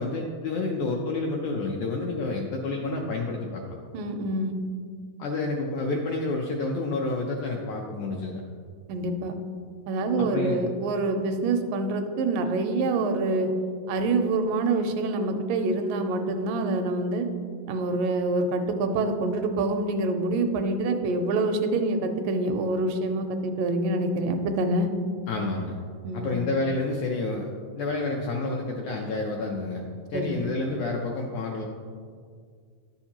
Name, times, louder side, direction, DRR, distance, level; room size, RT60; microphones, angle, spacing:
voice 1, 0.0-3.6 5.2-8.4 10.2-10.7 25.3-25.8 26.1-27.5 27.8-29.8 30.1-31.6, left 3 dB, 80° left, 0 dB, 1.7 m, -29 dB
voice 2, 3.9-4.5 8.9-9.3 9.9-13.5 13.9-17.3 17.7-24.9 26.0-26.4 30.1-30.4, right 2 dB, 80° right, 6 dB, 2.1 m, -26 dB
11.0 x 7.1 x 2.9 m, 2.1 s
omnidirectional pair, 4.0 m